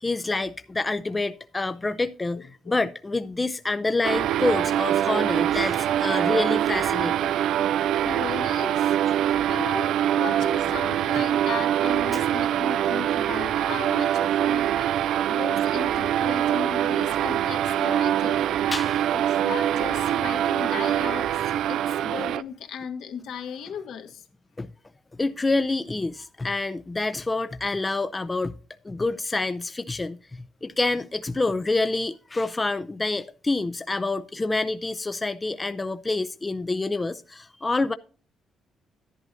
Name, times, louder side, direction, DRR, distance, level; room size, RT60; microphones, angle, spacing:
voice 1, 0.0-7.3 12.1-12.2 18.7-19.1 24.6-24.7 25.2-28.6 28.8-37.9, left 3 dB, 20° left, 0.5 m, -27 dB
voice 2, 2.4-2.8 8.0-9.0 9.5-15.0 15.3-18.5 19.1-24.3, left 7 dB, 75° left, 1.7 m, -36 dB
sound 1, 4.0-22.4, right 11 dB, 80° right, 0.4 m, -24 dB
11.0 x 10.5 x 2.6 m
cardioid pair, 90°, 0 cm